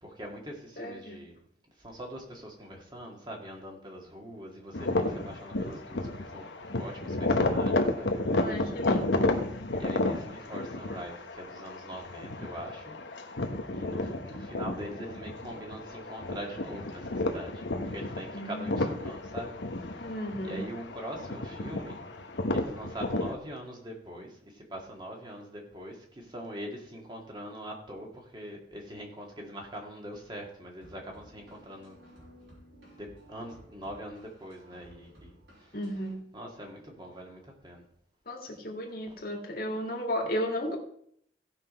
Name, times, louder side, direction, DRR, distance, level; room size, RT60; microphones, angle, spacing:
voice 1, 0.0-1.4 1.8-8.7 9.8-13.0 13.7-20.1 20.4-22.0 22.5-32.0 32.9-35.8 36.3-37.8 39.1-39.2, equal, 25° right, 0 dB, 2.1 m, -43 dB
voice 2, 0.8-1.2 8.3-9.5 18.3-18.8 20.0-20.6 35.7-36.3 38.3-40.8, equal, 55° left, 1 dB, 2.0 m, -34 dB
sound 1, 4.7-23.4, left 2 dB, 90° left, 1.1 m, -32 dB
sound 2, 30.8-36.1, equal, 85° right, 5.2 m, -55 dB
16.5 x 5.9 x 4.3 m, 0.67 s
head